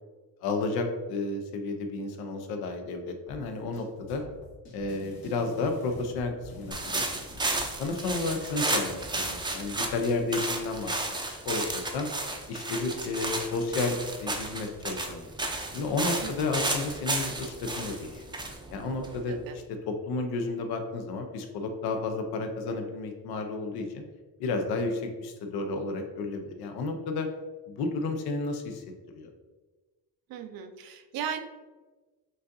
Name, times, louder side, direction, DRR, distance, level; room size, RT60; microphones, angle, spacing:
voice 1, 0.4-4.2 4.7-7.3 7.8-12.1 12.5-15.3 15.7-18.2 18.7-24.0 24.4-27.3 27.7-28.8 29.1-29.3, left 3 dB, 90° left, 5 dB, 0.7 m, -32 dB
sound 1, 3.3-7.7, left 1 dB, 75° left, 1.5 m, -47 dB
sound 2, 6.7-19.5, right 2 dB, 10° right, 0.5 m, -33 dB
voice 2, 30.3-31.4, right 8 dB, 70° right, 8 dB, 0.6 m, -36 dB
6.1 x 2.6 x 2.6 m, 1.3 s
cardioid pair, 105°, 37 cm